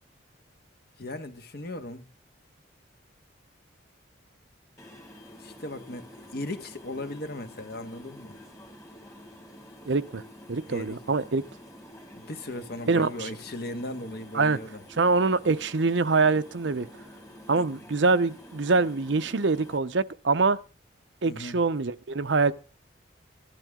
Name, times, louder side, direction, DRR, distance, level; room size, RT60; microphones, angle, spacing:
voice 1, 1.0-2.0 5.4-8.4 10.7-11.1 12.1-14.8 17.6-17.8 21.2-21.6, left 1 dB, 50° left, 1.5 m, -37 dB
sound 1, 4.8-19.8, equal, 15° left, 1.9 m, -48 dB
voice 2, 9.9-10.2 10.5-11.4 12.9-13.3 14.3-14.6 15.0-16.9 17.5-20.6 21.2-22.5, right 3 dB, 65° right, 0.7 m, -24 dB
17.0 x 12.0 x 3.7 m
head